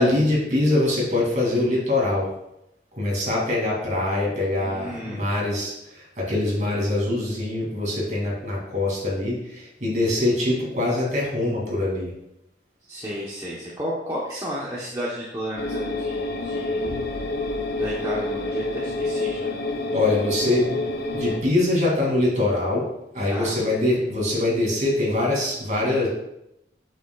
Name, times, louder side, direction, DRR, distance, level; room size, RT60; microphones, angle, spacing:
voice 1, 0.0-2.3 3.0-5.7 6.2-12.1 19.9-20.8 21.1-22.8 23.1-26.1, left 2 dB, 40° right, -4 dB, 2.6 m, -23 dB
voice 2, 4.6-5.3 12.9-16.9 17.8-19.5 23.3-23.5, equal, 20° right, -7 dB, 1.0 m, -33 dB
sound 1, 15.6-21.4, left 2 dB, 60° left, 0.8 m, -28 dB
7.9 x 7.0 x 2.4 m, 0.84 s
head